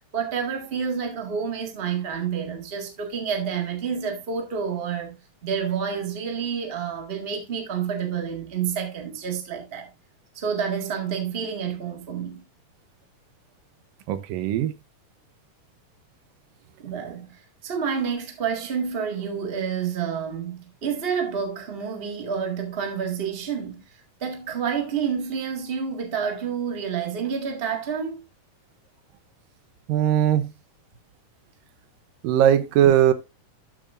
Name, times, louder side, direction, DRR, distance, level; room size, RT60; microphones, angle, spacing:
voice 1, 0.1-5.1 5.4-9.9 10.3-12.4 16.8-28.2, right 7 dB, 25° right, 1.2 m, -29 dB
voice 2, 14.1-14.7 29.9-30.5 32.2-33.1, right 10 dB, 85° right, 2.5 m, -19 dB
12.0 x 7.1 x 2.5 m
omnidirectional pair, 3.8 m